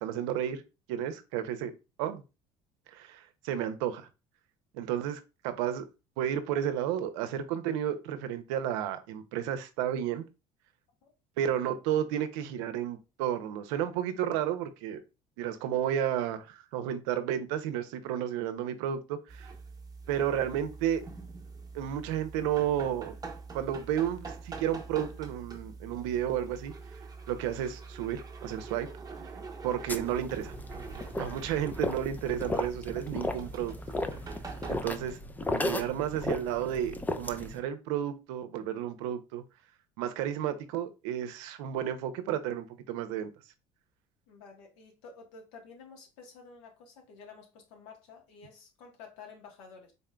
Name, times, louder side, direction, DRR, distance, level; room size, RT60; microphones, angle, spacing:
voice 1, 0.0-0.6 0.9-1.7 2.0-2.2 2.9-4.1 4.7-5.9 6.2-10.3 11.4-15.0 15.4-19.5 20.1-21.0 21.7-23.2 23.5-26.7 27.3-28.9 29.6-30.5 31.2-33.7 34.7-35.2 35.5-39.4 40.0-43.3, right 10 dB, 85° right, 0.6 m, -32 dB
sound 1, 19.3-34.8, right 4 dB, 25° right, 0.9 m, -45 dB
voice 2, 29.3-29.6 31.1-31.5 44.3-49.9, left 5 dB, 85° left, 1.3 m, -51 dB
sound 2, 29.9-37.6, left 2 dB, 10° left, 0.4 m, -35 dB
4.0 x 3.7 x 2.2 m
supercardioid pair, 95°, 16 cm